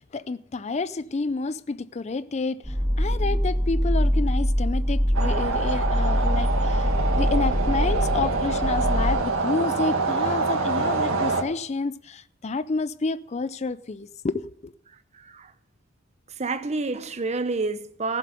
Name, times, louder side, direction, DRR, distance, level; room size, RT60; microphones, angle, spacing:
voice 1, 0.0-14.7, left 3 dB, 30° left, 0.4 m, -29 dB
sound 1, 2.6-9.2, equal, 10° right, 1.4 m, -24 dB
sound 2, 5.1-11.4, right 3 dB, 85° right, 1.9 m, -26 dB
voice 2, 15.1-15.5 16.4-18.2, right 3 dB, 30° right, 0.8 m, -28 dB
15.5 x 7.5 x 6.8 m
head